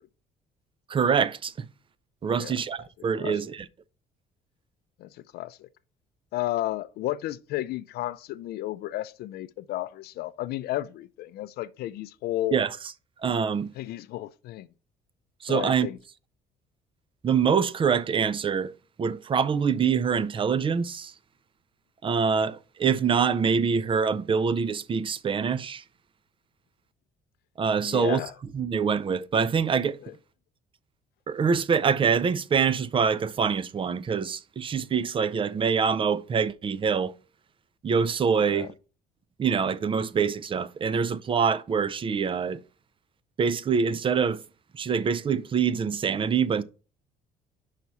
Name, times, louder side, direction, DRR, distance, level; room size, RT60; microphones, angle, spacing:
voice 1, 0.9-1.7 2.2-3.6 12.5-12.7 13.2-13.7 15.4-15.9 17.2-18.7 19.0-21.1 22.0-25.8 27.6-28.2 28.5-30.0 31.3-37.1 37.8-38.7 39.4-42.6 43.4-44.4 44.7-46.6, right 6 dB, 30° right, 0.5 m, -25 dB
voice 2, 5.0-5.7 6.3-12.6 13.8-14.7 15.5-16.0 27.8-28.3 30.0-30.1 38.4-38.7, left 15 dB, 70° left, 0.4 m, -33 dB
5.7 x 4.7 x 4.1 m
cardioid pair, 110°, 17 cm